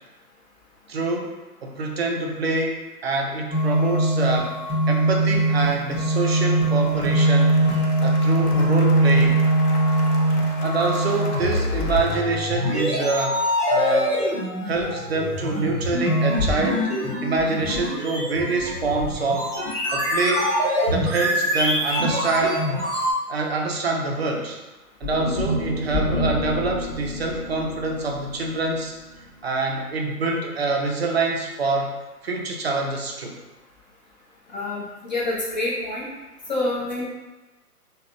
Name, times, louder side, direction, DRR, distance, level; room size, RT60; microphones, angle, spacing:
voice 1, 0.9-1.3 1.6-4.5 4.9-7.6 8.0-9.4 10.6-13.3 13.7-14.3 14.7-16.9 17.2-19.5 19.9-20.5 20.9-22.6 23.3-24.6 25.0-28.9 29.4-31.9 32.2-33.3, right 3 dB, 45° right, 1 dB, 0.4 m, -25 dB
sound 1, 3.5-23.1, right 1 dB, 20° right, 0.9 m, -22 dB
Cheering / Applause, 6.8-12.2, left 3 dB, 75° left, 0.6 m, -38 dB
sound 2, 25.0-29.3, left 1 dB, 10° left, 0.9 m, -28 dB
voice 2, 34.5-36.1 36.5-37.1, left 2 dB, 30° left, -6 dB, 0.6 m, -27 dB
3.4 x 2.2 x 2.4 m, 1.1 s
figure-of-eight pair, 135°, 47 cm